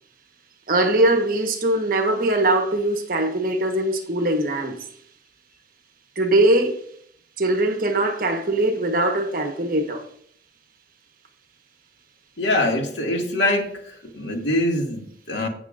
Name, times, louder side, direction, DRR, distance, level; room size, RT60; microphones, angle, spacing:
voice 1, 0.7-4.8 6.2-6.8 7.4-10.0, right 1 dB, 50° right, 1.2 m, -21 dB
voice 2, 12.4-13.7 14.1-15.5, left 1 dB, 85° left, 2.2 m, -23 dB
16.5 x 6.4 x 2.5 m
head